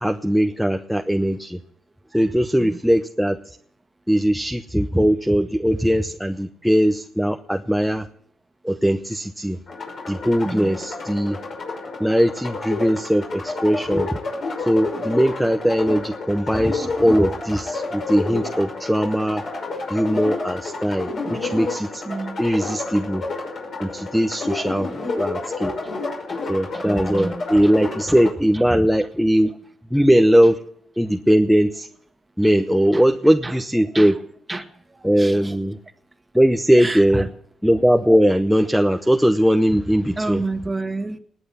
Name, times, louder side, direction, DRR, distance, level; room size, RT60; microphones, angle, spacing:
voice 1, 0.0-1.6 2.1-3.6 4.1-8.1 8.6-9.6 10.1-11.4 12.0-14.2 14.6-19.4 19.9-22.0 22.4-23.2 23.8-24.9 25.2-25.7 26.5-29.5 29.9-30.6 31.0-31.9 32.4-34.2 35.0-35.8 36.3-37.3 37.6-40.4, equal, ahead, 5 dB, 0.7 m, -19 dB
sound 1, 9.7-28.3, left 3 dB, 55° left, 5.7 m, -30 dB
voice 2, 10.4-10.7 22.0-22.4 25.8-26.0 26.3-26.4 26.7-27.4 28.5-28.6 32.4-32.5 32.9-33.0 33.4-33.5 33.9-34.1 34.5-35.5 36.8-37.3 40.2-41.2, right 2 dB, 15° right, 7 dB, 1.6 m, -30 dB
20.0 x 7.9 x 7.0 m, 0.67 s
cardioid pair, 90°, 0 cm